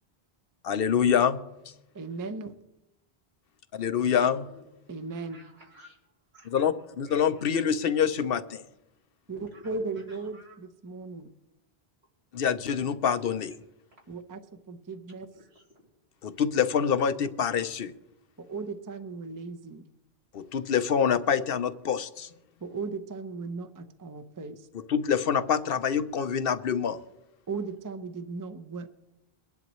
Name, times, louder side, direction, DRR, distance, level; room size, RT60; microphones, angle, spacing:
voice 1, 0.6-1.4 3.7-4.4 6.4-8.6 12.3-13.5 16.2-17.9 20.3-22.3 24.9-27.0, left 7 dB, 65° left, 11 dB, 0.8 m, -26 dB
voice 2, 1.9-2.5 4.9-5.4 9.3-11.3 14.1-15.3 18.4-19.8 22.6-24.7 27.5-28.9, right 4 dB, 25° right, 8 dB, 0.6 m, -37 dB
voice 3, 4.0-4.6 5.1-6.0 6.3-6.7 7.1-7.7 9.3-9.9 10.3-10.5 15.3-15.9, left 1 dB, 85° right, -3 dB, 3.2 m, -51 dB
23.0 x 10.5 x 3.1 m, 0.94 s
omnidirectional pair, 1.1 m